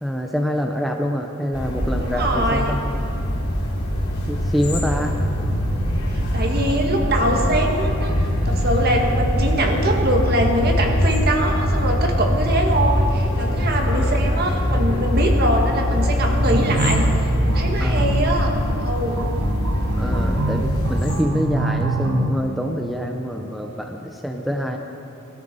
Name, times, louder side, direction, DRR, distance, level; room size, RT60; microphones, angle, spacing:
voice 1, 0.0-3.0 4.3-5.2 13.9-14.2 17.8-18.2 19.9-24.8, equal, ahead, 2 dB, 0.6 m, -26 dB
sound 1, 1.5-21.2, equal, 90° left, 3.5 m, -22 dB
voice 2, 2.0-2.8 6.1-8.1 8.5-17.1 17.4-18.5 18.8-19.2, right 1 dB, 45° right, 2 dB, 1.8 m, -23 dB
sound 2, 16.5-22.3, right 2 dB, 80° right, 1.1 m, -25 dB
20.0 x 13.0 x 5.4 m, 2.9 s
head